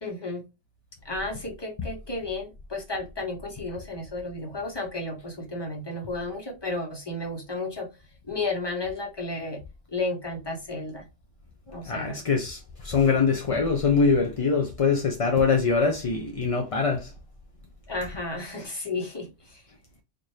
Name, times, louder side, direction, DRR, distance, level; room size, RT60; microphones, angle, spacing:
voice 1, 0.0-0.4 1.0-7.9 8.2-9.6 9.9-11.1 11.7-12.2 17.9-19.6, left 2 dB, 25° left, 1.0 m, -33 dB
voice 2, 11.9-17.1, left 5 dB, 45° left, 0.5 m, -23 dB
4.2 x 2.6 x 3.1 m
omnidirectional pair, 1.2 m